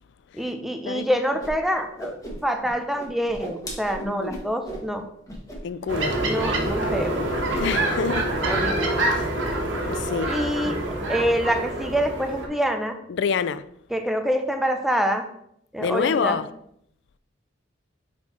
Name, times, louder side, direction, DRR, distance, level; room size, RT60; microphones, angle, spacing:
voice 1, 0.3-2.1 2.4-5.0 6.2-7.2 8.5-8.9 10.3-10.8 11.1-12.9 13.9-15.2 15.7-16.4, equal, ahead, 0.6 m, -26 dB
Whoosh swoosh swish, 1.4-1.5 1.8-2.7 3.0-4.9 5.3-5.6 5.8-6.0 6.3-6.9 7.1-7.7, right 1 dB, 20° left, 1.4 m, -36 dB
voice 2, 4.0-4.4 5.6-6.2 7.6-8.3 9.1-9.2 9.9-10.3 13.1-13.6 15.8-16.5, left 6 dB, 70° left, 0.4 m, -26 dB
sound 1, 5.9-12.5, right 1 dB, 75° right, 1.3 m, -26 dB
sound 2, 7.9-12.9, right 2 dB, 40° right, 1.3 m, -43 dB
5.9 x 4.4 x 4.2 m
head